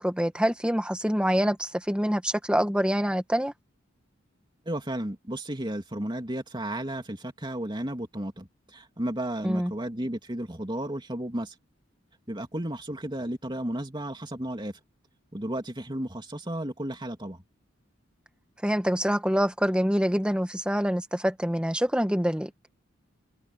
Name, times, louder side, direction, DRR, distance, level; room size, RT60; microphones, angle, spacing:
voice 1, 0.0-3.5 9.4-9.7 18.6-22.5, equal, 5° right, 1.8 m, -25 dB
voice 2, 4.6-11.5 12.3-14.7 15.3-17.4, right 1 dB, 25° right, 3.0 m, -33 dB
head